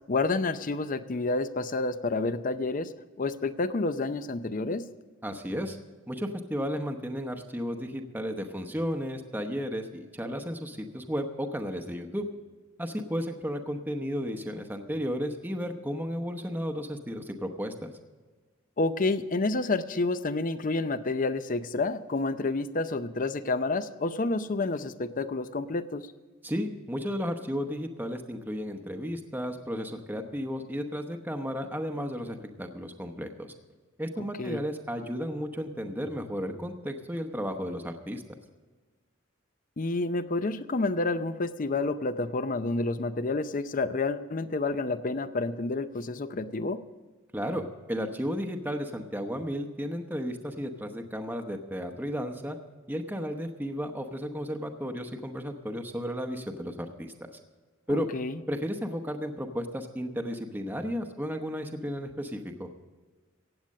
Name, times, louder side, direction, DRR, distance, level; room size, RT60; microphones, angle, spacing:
voice 1, 0.1-2.9 3.2-4.9 18.8-26.0 34.4-34.6 39.8-46.8 57.9-58.4, left 3 dB, 40° left, 13 dB, 0.6 m, -29 dB
voice 2, 5.2-5.8 6.1-12.3 12.8-17.9 26.4-33.5 34.0-38.2 47.3-52.6 52.9-57.3 57.9-58.1 58.5-62.7, equal, 10° right, 5 dB, 0.9 m, -33 dB
16.0 x 8.9 x 6.5 m, 1.3 s
head